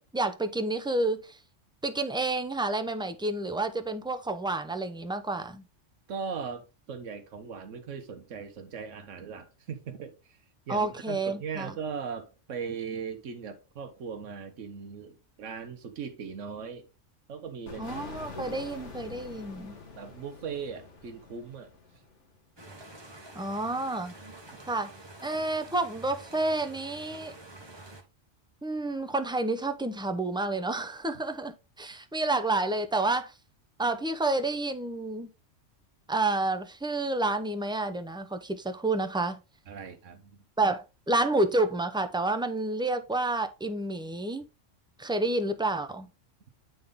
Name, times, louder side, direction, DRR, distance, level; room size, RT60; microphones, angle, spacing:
voice 1, 0.0-1.4 1.8-5.6 10.7-11.7 17.8-19.8 23.3-24.1 24.7-24.9 25.2-27.3 28.6-33.3 33.8-35.3 36.1-39.4 40.6-44.4 45.0-46.1, right 2 dB, 5° right, 0.3 m, -29 dB
voice 2, 6.1-10.4 10.7-16.8 17.3-18.1 18.3-18.6 20.0-21.7 39.7-40.4, right 6 dB, 85° right, 1.2 m, -39 dB
sound 1, 17.7-22.3, left 4 dB, 70° left, 1.6 m, -45 dB
sound 2, 22.6-28.0, right 2 dB, 20° right, 1.1 m, -48 dB
9.3 x 3.9 x 3.5 m
omnidirectional pair, 1.3 m